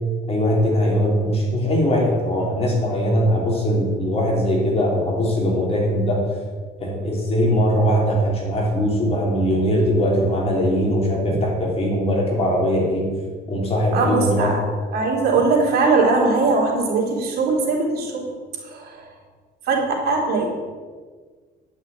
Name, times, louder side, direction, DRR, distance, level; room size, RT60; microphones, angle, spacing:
voice 1, 0.3-6.2 6.8-13.1 13.5-14.5, equal, 35° left, -2 dB, 3.4 m, -20 dB
voice 2, 13.9-14.6 14.9-18.2 18.6-19.1 19.6-20.5, right 3 dB, 65° right, -1 dB, 3.4 m, -20 dB
10.5 x 6.3 x 8.3 m, 1.5 s
cardioid pair, 110°, 17 cm